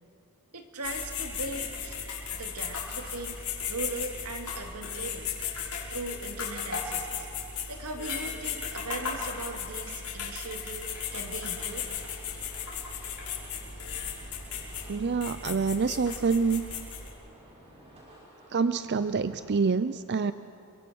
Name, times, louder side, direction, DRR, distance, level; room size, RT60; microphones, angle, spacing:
voice 1, 0.5-2.0 2.3-3.4 3.7-5.3 5.9-7.3 7.7-11.9, right 2 dB, 85° right, 4 dB, 2.4 m, -39 dB
sound 1, 0.8-17.1, left 6 dB, 75° left, 6.0 m, -36 dB
sound 2, 10.8-19.6, right 1 dB, 30° right, 6.9 m, -54 dB
voice 2, 14.9-16.6 18.5-20.3, right 5 dB, 50° right, 12 dB, 0.5 m, -26 dB
29.5 x 24.5 x 6.3 m, 2.7 s
head